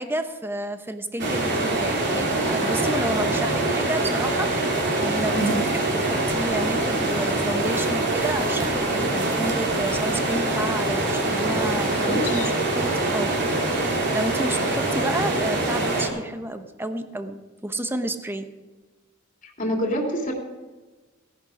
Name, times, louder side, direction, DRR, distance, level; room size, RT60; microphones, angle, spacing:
voice 1, 0.0-18.5, right 1 dB, 10° right, 8 dB, 1.0 m, -31 dB
sound 1, 1.2-16.1, right 2 dB, 60° right, 3.5 m, -24 dB
voice 2, 11.9-12.4 19.4-20.3, equal, 40° left, 0 dB, 2.7 m, -26 dB
17.0 x 11.0 x 5.0 m, 1.2 s
head